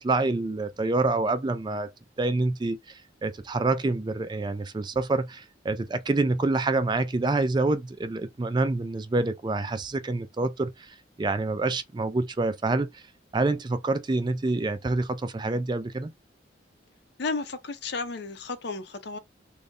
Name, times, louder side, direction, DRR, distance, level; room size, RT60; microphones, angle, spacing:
voice 1, 0.0-1.9 2.2-13.0 13.3-16.1, right 2 dB, 25° right, 0.4 m, -27 dB
voice 2, 17.2-19.2, left 3 dB, 60° left, 0.6 m, -33 dB
3.9 x 2.1 x 3.6 m
head